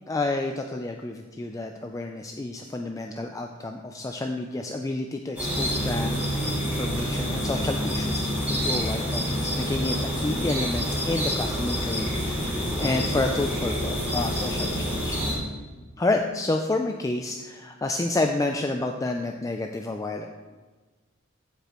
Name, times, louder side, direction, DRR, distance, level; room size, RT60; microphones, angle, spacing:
voice 1, 0.1-15.2 16.0-20.3, left 2 dB, 15° left, 3 dB, 0.3 m, -30 dB
sound 1, 5.4-15.3, equal, 10° right, 2.9 m, -27 dB
14.5 x 5.0 x 3.0 m, 1.3 s
head